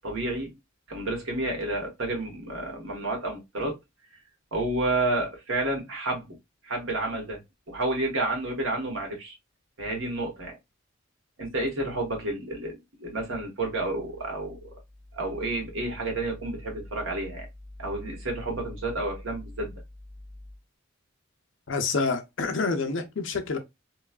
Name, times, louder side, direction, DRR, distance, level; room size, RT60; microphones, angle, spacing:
voice 1, 0.0-0.5 0.9-3.8 4.5-6.3 6.6-7.4 7.7-9.3 9.8-10.6 11.4-14.7 15.1-17.5 17.8-19.7, right 2 dB, 75° right, 1.3 m, -30 dB
voice 2, 21.7-23.6, left 4 dB, 60° left, 0.6 m, -27 dB
3.0 x 2.3 x 2.3 m
head